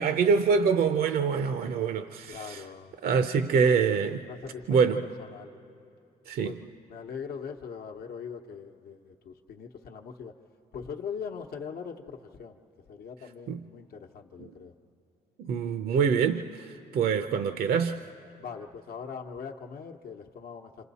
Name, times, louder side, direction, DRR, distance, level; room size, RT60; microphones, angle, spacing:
voice 1, 0.0-2.6 3.0-4.2 4.7-5.0 6.3-6.6 13.5-13.6 15.4-18.0, right 6 dB, 65° right, 0.6 m, -25 dB
voice 2, 2.3-2.9 4.2-5.5 6.4-6.6 6.8-10.3 10.7-12.6 12.9-14.7 18.4-20.8, left 6 dB, 70° left, 0.9 m, -41 dB
28.0 x 26.0 x 4.1 m
cardioid pair, 90°, 17 cm